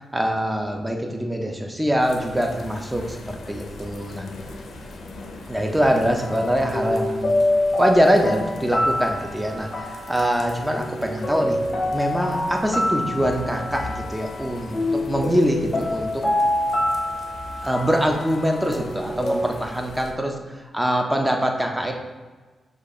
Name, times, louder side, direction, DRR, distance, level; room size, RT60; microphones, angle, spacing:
voice 1, 0.1-4.3 5.5-7.4 7.8-11.6 11.9-16.2 17.6-21.9, equal, 10° right, 2 dB, 0.6 m, -23 dB
sound 1, 2.0-20.1, left 2 dB, 80° left, 0.5 m, -41 dB
sound 2, 6.2-19.5, left 1 dB, 40° left, 0.6 m, -26 dB
5.1 x 2.4 x 3.8 m, 1.3 s
cardioid pair, 100°, 0 cm